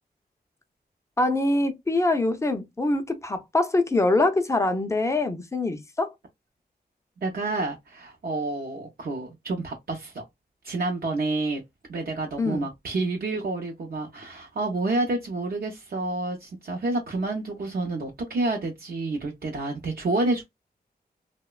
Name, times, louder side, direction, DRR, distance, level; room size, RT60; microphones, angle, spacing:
voice 1, 1.2-6.1 12.4-12.7, left 2 dB, 15° left, 0.4 m, -24 dB
voice 2, 7.2-10.2 10.6-11.6 11.9-20.4, right 2 dB, 65° right, 0.5 m, -29 dB
2.9 x 2.1 x 2.3 m
wide cardioid pair, 125°, 17 cm